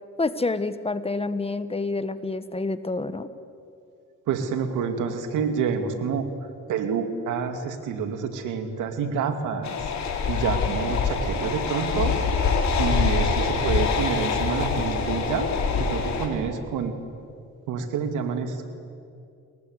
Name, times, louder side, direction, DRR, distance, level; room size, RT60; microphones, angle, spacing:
voice 1, 0.2-3.3, left 3 dB, 20° left, 12 dB, 1.3 m, -28 dB
voice 2, 4.3-6.3 6.7-9.9 10.3-12.2 12.8-15.5 15.8-16.9 17.7-18.7, right 6 dB, 85° right, 7 dB, 2.5 m, -28 dB
sound 1, 9.6-16.3, left 5 dB, 65° left, 4.4 m, -25 dB
29.5 x 21.0 x 8.2 m, 2.6 s
cardioid pair, 90°, 30 cm